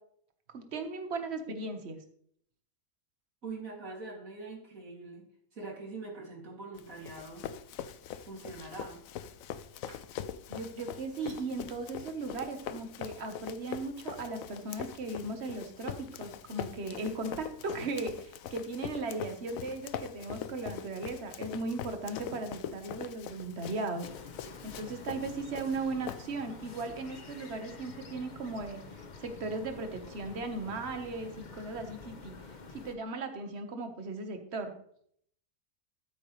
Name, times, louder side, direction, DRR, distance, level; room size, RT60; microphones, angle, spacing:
voice 1, 0.5-2.0 10.5-24.1 24.6-28.8 29.2-32.3 32.7-34.7, right 3 dB, 45° right, 6 dB, 1.5 m, -37 dB
voice 2, 3.4-7.5 8.2-9.0, right 3 dB, 65° right, -1 dB, 3.1 m, -43 dB
Run, 6.8-26.6, left 9 dB, 70° left, 1.0 m, -43 dB
sound 1, 24.0-33.0, left 4 dB, 35° left, 0.9 m, -48 dB
13.0 x 9.1 x 3.3 m, 0.65 s
omnidirectional pair, 1.6 m